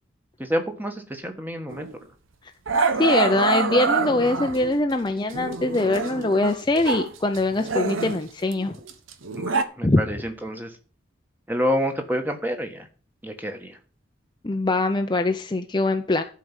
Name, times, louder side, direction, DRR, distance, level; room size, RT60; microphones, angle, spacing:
voice 1, 0.4-1.9 9.3-10.7 11.5-12.9 13.2-13.8, equal, 10° right, 6 dB, 1.3 m, -28 dB
Growling, 1.7-1.9 2.7-4.8 5.3-7.1 7.3-9.6, right 4 dB, 90° right, 1.1 m, -26 dB
voice 2, 3.0-8.8 9.8-10.0 14.4-16.2, left 2 dB, 25° left, 6 dB, 0.5 m, -22 dB
11.5 x 4.7 x 7.2 m, 0.39 s
head